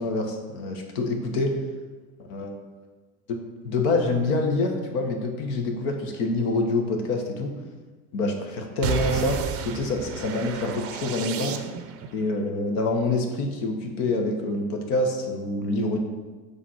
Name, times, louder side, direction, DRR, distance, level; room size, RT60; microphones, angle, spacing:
voice 1, 0.0-1.5 2.2-2.5 3.3-3.4 3.6-7.5 8.1-11.5 12.1-16.0, left 2 dB, 70° left, 3 dB, 1.3 m, -26 dB
sound 1, 8.8-12.1, right 8 dB, 35° right, 0.5 m, -31 dB
7.3 x 3.4 x 5.7 m, 1.3 s
supercardioid pair, 125°, 44 cm